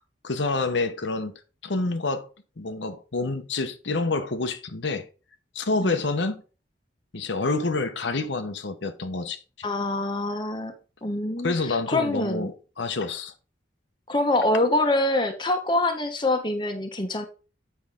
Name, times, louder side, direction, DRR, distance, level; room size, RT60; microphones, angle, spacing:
voice 1, 0.2-1.3 1.6-2.3 2.6-5.1 5.5-6.4 7.1-9.7 11.4-13.3, left 3 dB, 75° left, 0.9 m, -28 dB
voice 2, 9.6-10.7 11.0-12.5 14.1-17.3, left 2 dB, 25° left, 1.0 m, -25 dB
8.5 x 5.6 x 3.7 m
head